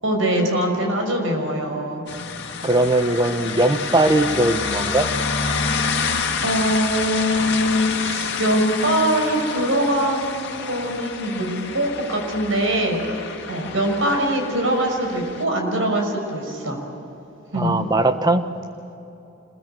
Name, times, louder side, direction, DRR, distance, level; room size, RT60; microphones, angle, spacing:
voice 1, 0.0-2.0 6.4-13.0 13.5-16.8 17.5-17.7, right 1 dB, 85° right, 3 dB, 6.0 m, -22 dB
sound 1, 2.1-15.4, left 5 dB, 60° left, 2.1 m, -28 dB
voice 2, 2.6-5.1 17.5-18.4, right 2 dB, 20° right, 8 dB, 1.2 m, -19 dB
27.0 x 22.5 x 9.1 m, 2.9 s
head